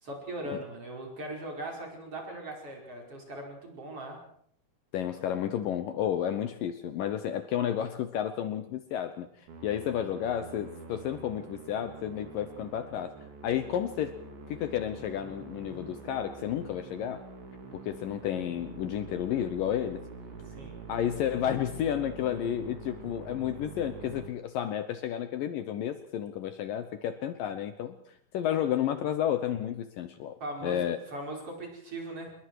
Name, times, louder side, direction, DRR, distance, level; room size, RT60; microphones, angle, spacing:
voice 1, 0.0-4.2 20.5-20.8 30.4-30.9 31.1-32.3, right 1 dB, 30° right, 0 dB, 5.8 m, -39 dB
voice 2, 4.9-13.2 13.4-14.2 14.5-17.2 17.7-20.0 20.9-31.0, left 10 dB, 75° left, 10 dB, 2.1 m, -31 dB
Musical instrument, 9.5-24.3, right 4 dB, 85° right, 6.1 m, -45 dB
27.5 x 21.5 x 4.8 m, 0.64 s
omnidirectional pair, 5.0 m